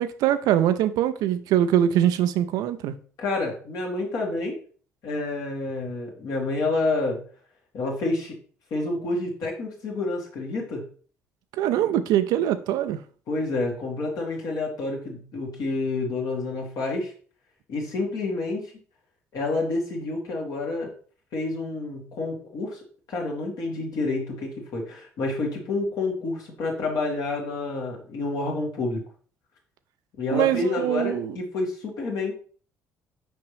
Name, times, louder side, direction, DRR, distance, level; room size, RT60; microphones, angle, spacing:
voice 1, 0.0-2.9 11.6-13.0 30.3-31.4, right 11 dB, 55° right, 0.5 m, -23 dB
voice 2, 3.2-4.6 5.0-7.2 7.7-8.4 8.7-10.8 13.3-17.1 17.7-18.7 19.3-20.9 21.3-22.8 23.1-29.0 30.2-32.3, left 2 dB, 55° left, 2.0 m, -28 dB
6.1 x 5.2 x 3.3 m
figure-of-eight pair, 50°, 8 cm